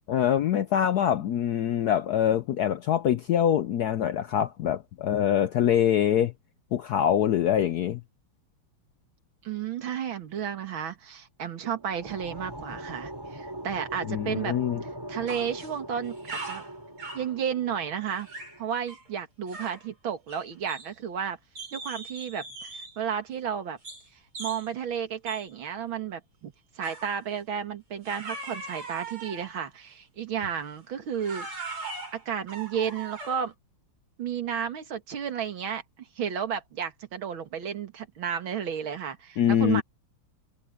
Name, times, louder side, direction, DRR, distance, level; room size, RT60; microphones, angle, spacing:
voice 1, 0.1-6.3 6.7-8.0 14.1-14.8 39.4-39.8, left 10 dB, 80° left, 0.8 m, -24 dB
voice 2, 9.4-14.6 15.1-16.6 17.1-18.3 18.6-21.4 21.7-23.8 24.4-31.5 32.1-33.5 34.2-35.8 36.2-39.8, right 8 dB, 65° right, 2.5 m, -32 dB
sound 1, 11.5-18.6, right 1 dB, 10° right, 4.8 m, -41 dB
sound 2, 15.3-15.8 16.0-17.3 18.1-18.6 18.9-19.1 19.5-19.9 20.3-21.2 21.6-23.0 23.9-24.1 24.4-24.7 25.3-25.5 26.8-27.2 28.0-29.6 30.4-30.6 31.1-33.5, right 3 dB, 85° right, 8.2 m, -40 dB
omnidirectional pair, 2.4 m